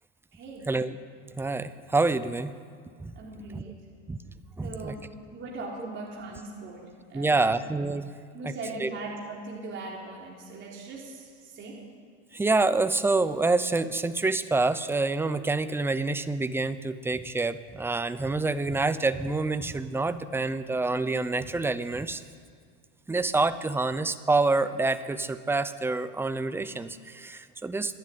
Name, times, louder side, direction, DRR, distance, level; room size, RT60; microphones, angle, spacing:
voice 1, 0.3-0.7 3.2-3.8 4.6-5.0 5.3-6.8 7.1-7.5 8.3-11.8, right 3 dB, 30° right, -3 dB, 4.0 m, -39 dB
voice 2, 1.4-2.5 3.0-3.1 3.5-3.6 4.1-4.2 4.6-4.9 7.1-8.1 8.4-8.5 8.8-8.9 12.3-22.2 23.1-28.0, right 3 dB, 5° right, 12 dB, 0.7 m, -27 dB
25.5 x 11.0 x 9.3 m, 2.1 s
supercardioid pair, 135°, 37 cm